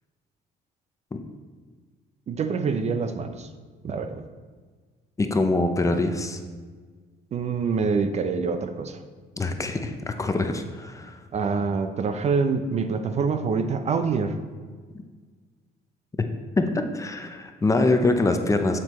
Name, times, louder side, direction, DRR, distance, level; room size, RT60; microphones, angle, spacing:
voice 1, 2.3-3.5 3.8-4.2 7.3-9.0 11.3-14.3, right 5 dB, 40° right, 8 dB, 0.6 m, -25 dB
voice 2, 5.2-6.4 9.4-11.2 16.6-18.8, left 2 dB, 20° left, 6 dB, 0.6 m, -24 dB
7.7 x 7.5 x 3.1 m, 1.5 s
cardioid pair, 110°, 17 cm